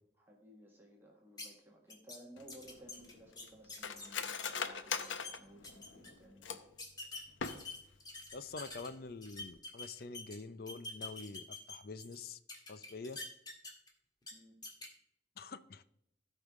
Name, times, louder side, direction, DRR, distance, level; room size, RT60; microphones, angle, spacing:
voice 1, 0.2-6.7 14.3-14.6, equal, 10° right, -2 dB, 1.6 m, -58 dB
sound 1, 1.4-1.5 1.9-2.2 2.5-4.5 4.9-5.3 5.6-6.1 6.8-8.9 9.2-10.4 10.7-12.1 12.5-13.9 14.2-14.3 14.6-14.9, left 2 dB, 20° left, 1.7 m, -46 dB
Cutlery silverware, 2.4-6.8 7.3-8.0 8.3-8.4 8.7-9.1 9.4-9.6, left 6 dB, 85° left, 0.8 m, -41 dB
voice 2, 8.3-12.4 12.7-13.2 15.4-15.8, left 4 dB, 50° left, 13 dB, 0.5 m, -46 dB
16.5 x 5.6 x 3.7 m, 0.78 s
head